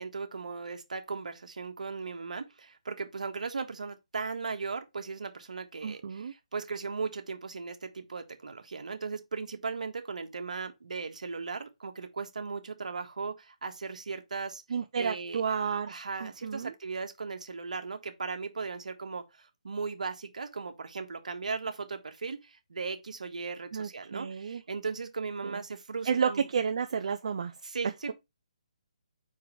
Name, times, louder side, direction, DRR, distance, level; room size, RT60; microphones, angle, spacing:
voice 1, 0.0-14.6 14.9-15.4 15.9-26.5 27.6-28.1, right 4 dB, 75° right, 1.6 m, -37 dB
voice 2, 5.8-6.3 14.7-16.7 23.7-24.6 25.4-25.6 26.1-27.5, right 6 dB, 60° right, 0.6 m, -31 dB
4.8 x 4.8 x 4.7 m
hypercardioid pair, 155°, 4 cm